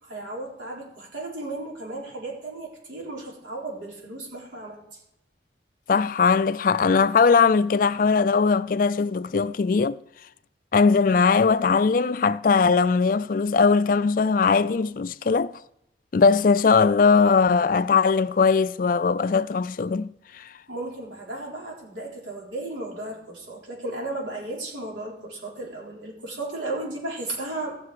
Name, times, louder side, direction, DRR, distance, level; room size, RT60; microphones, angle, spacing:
voice 1, 0.0-5.0 20.7-27.8, right 2 dB, 90° right, 3.9 m, -35 dB
voice 2, 5.9-10.0 10.7-15.5 16.1-20.1 20.3-20.5, left 5 dB, 45° left, 0.3 m, -20 dB
16.0 x 6.7 x 4.8 m
head